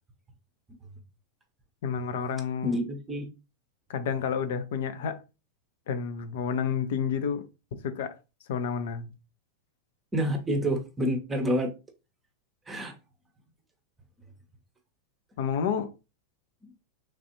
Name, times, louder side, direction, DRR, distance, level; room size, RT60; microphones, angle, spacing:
voice 1, 1.8-2.8 3.9-5.2 5.9-7.5 8.0-8.2 8.5-9.1 10.6-10.7 15.4-15.9, left 7 dB, 55° left, 0.5 m, -30 dB
voice 2, 2.6-3.3 10.1-11.7 12.7-12.9, equal, 15° right, 0.7 m, -28 dB
3.3 x 2.4 x 2.7 m
figure-of-eight pair, 90°, 0 cm